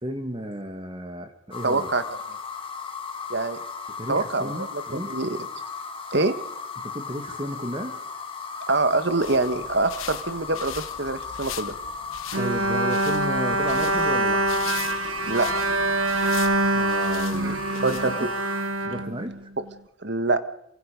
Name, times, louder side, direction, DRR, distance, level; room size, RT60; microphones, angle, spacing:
voice 1, 0.0-1.9 4.0-5.2 6.8-8.0 12.3-14.5 16.7-18.3 18.8-19.5, equal, 25° right, 6 dB, 2.1 m, -33 dB
Toilet flush longer, 1.5-18.8, left 5 dB, 25° left, 1.9 m, -36 dB
voice 2, 1.6-2.0 3.3-3.6 4.1-5.4 6.1-6.3 8.7-11.7 15.2-15.5 17.8-18.3 20.0-20.4, right 3 dB, 55° right, 11 dB, 1.4 m, -25 dB
sound 1, 9.0-18.5, left 10 dB, 80° left, 1.1 m, -41 dB
Bowed string instrument, 12.3-19.7, right 2 dB, 80° right, 1.4 m, -25 dB
27.5 x 24.5 x 5.3 m, 0.79 s
head